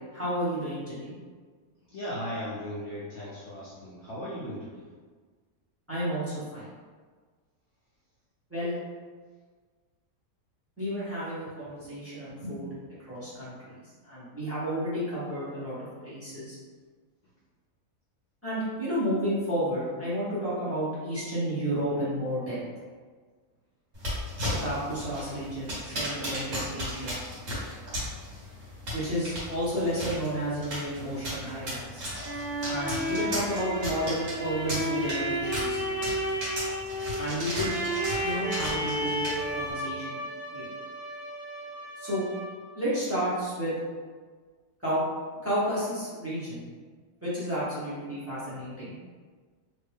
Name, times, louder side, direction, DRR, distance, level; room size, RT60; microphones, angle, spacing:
voice 1, 0.1-1.1 5.9-6.7 8.5-8.8 10.8-12.7 13.1-13.8 14.0-15.7 16.0-16.6 18.4-22.6 24.6-27.2 28.9-32.0 32.7-35.8 37.2-37.8 38.2-40.2 40.5-40.7 42.0-42.2 42.7-43.7 44.8-45.0 45.4-46.6 47.2-49.0, equal, 10° right, -11 dB, 1.2 m, -31 dB
voice 2, 1.9-4.8, equal, 60° left, -8 dB, 0.8 m, -37 dB
sound 1, 23.9-39.7, equal, 60° right, 1.6 m, -36 dB
sound 2, 31.9-42.7, equal, 40° right, 1.2 m, -33 dB
3.1 x 2.6 x 3.4 m, 1.5 s
omnidirectional pair, 1.6 m